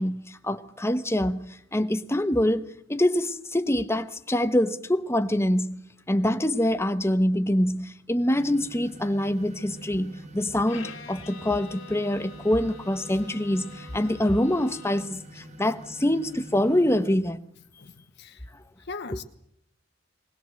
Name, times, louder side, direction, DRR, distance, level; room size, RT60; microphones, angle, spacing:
voice 1, 0.0-5.8 6.1-17.4 19.1-19.2, left 1 dB, 15° left, 1.1 m, -25 dB
sound 1, 8.3-17.2, right 1 dB, 35° right, 2.0 m, -46 dB
Bowed string instrument, 10.7-15.3, left 4 dB, 85° left, 2.5 m, -46 dB
voice 2, 17.8-18.5 18.8-19.2, left 4 dB, 60° left, 1.0 m, -40 dB
21.0 x 19.5 x 7.8 m
head